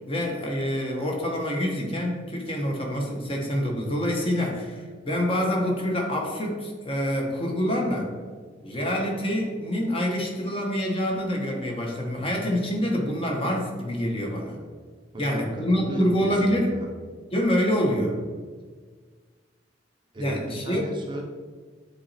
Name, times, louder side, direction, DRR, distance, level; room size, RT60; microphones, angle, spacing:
voice 1, 0.1-8.1 8.6-14.6 15.2-16.8 17.3-18.2 20.2-20.8, equal, 30° left, 0 dB, 1.0 m, -26 dB
voice 2, 15.1-16.9 20.1-21.2, equal, 25° right, 1 dB, 0.6 m, -35 dB
8.4 x 3.0 x 4.2 m, 1.5 s
head